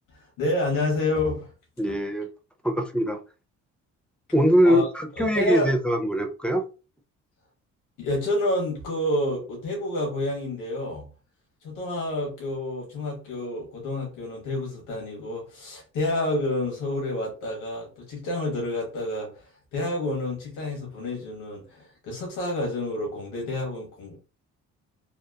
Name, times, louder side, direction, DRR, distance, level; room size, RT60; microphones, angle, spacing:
voice 1, 0.1-1.5 4.6-4.9 5.2-5.7 8.0-11.1 11.6-24.2, left 1 dB, 90° left, 1.0 m, -29 dB
voice 2, 1.8-2.3 2.6-3.2 4.3-6.7, equal, 5° left, 0.4 m, -22 dB
2.8 x 2.0 x 2.2 m
cardioid pair, 90°, 30 cm